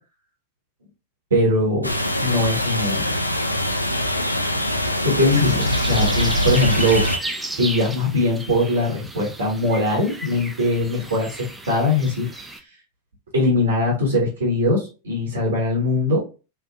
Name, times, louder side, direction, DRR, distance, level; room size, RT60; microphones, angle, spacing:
voice 1, 1.3-1.9 2.2-3.1 5.0-7.0 7.6-12.3 13.3-16.2, left 1 dB, 65° right, -3 dB, 1.5 m, -21 dB
sound 1, 1.8-7.2, equal, 85° left, 0.4 m, -23 dB
sound 2, 5.3-12.6, right 2 dB, 10° right, 0.5 m, -34 dB
3.4 x 3.1 x 2.4 m, 0.32 s
figure-of-eight pair, 90°, 0 cm